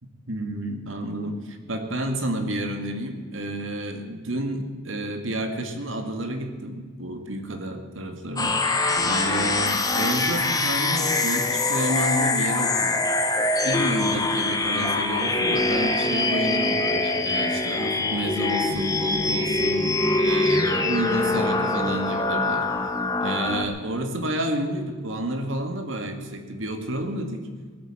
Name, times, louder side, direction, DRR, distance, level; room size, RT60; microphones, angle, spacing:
voice 1, 0.0-13.1 13.6-22.7 23.2-27.5, right 1 dB, 75° right, 5 dB, 2.1 m, -30 dB
sound 1, 8.4-23.6, left 2 dB, 20° left, 1.1 m, -24 dB
19.0 x 8.4 x 7.4 m, 1.5 s
head